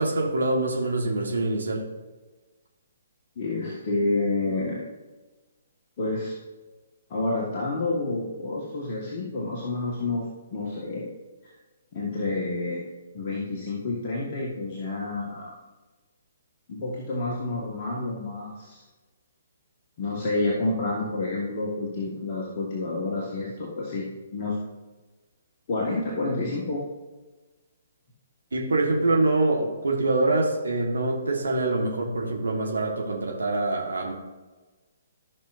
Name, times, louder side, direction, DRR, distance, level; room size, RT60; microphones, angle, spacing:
voice 1, 0.0-1.8 28.5-34.1, right 2 dB, 70° right, 0 dB, 1.5 m, -25 dB
voice 2, 3.3-4.9 6.0-6.4 7.1-11.1 11.9-12.8 13.1-15.6 16.7-18.8 20.0-24.6 25.7-26.8, left 2 dB, 40° left, -4 dB, 1.6 m, -29 dB
14.5 x 6.0 x 2.7 m, 1.2 s
figure-of-eight pair, 130°, 0 cm